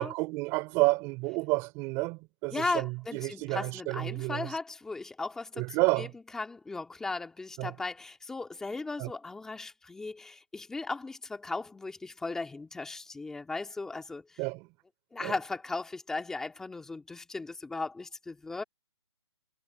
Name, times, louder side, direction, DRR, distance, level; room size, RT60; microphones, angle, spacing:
voice 1, 0.0-4.5 5.6-6.1 7.6-7.7 9.0-9.1 14.4-14.7 15.2-15.3, right 24 dB, 15° right, 4.6 m, -30 dB
voice 2, 2.5-6.1 6.3-14.2 15.1-18.6, left 3 dB, 5° left, 2.1 m, -37 dB
hypercardioid pair, 165°, 16 cm